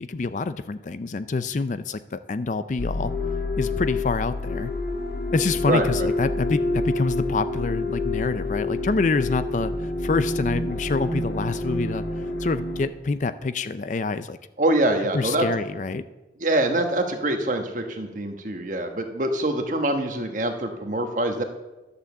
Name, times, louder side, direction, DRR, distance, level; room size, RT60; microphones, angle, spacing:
voice 1, 0.0-3.1 3.6-4.7 5.3-9.7 10.0-12.0 12.4-14.4 15.1-16.1, left 3 dB, 45° left, 13 dB, 0.4 m, -26 dB
sound 1, 2.8-12.9, left 2 dB, 65° left, 1.5 m, -28 dB
voice 2, 5.6-6.1 14.6-15.5 16.4-21.4, right 1 dB, 45° right, 5 dB, 1.2 m, -24 dB
11.5 x 6.9 x 7.0 m, 1.1 s
head